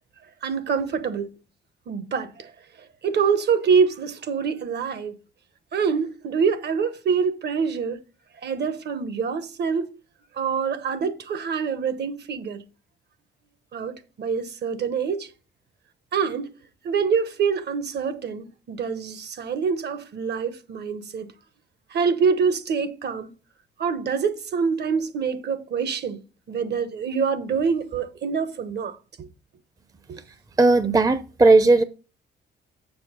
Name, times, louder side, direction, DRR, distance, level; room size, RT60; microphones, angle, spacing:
voice 1, 0.4-1.3 1.9-2.5 3.0-5.1 5.7-8.0 8.4-9.9 10.3-12.6 13.7-15.3 16.1-16.5 16.8-21.3 21.9-23.3 23.8-26.2 26.5-29.3 30.1-30.2, right 6 dB, 55° right, 1.2 m, -25 dB
voice 2, 30.6-31.8, right 3 dB, 20° right, 0.6 m, -16 dB
6.9 x 6.4 x 5.2 m
cardioid pair, 90°, 20 cm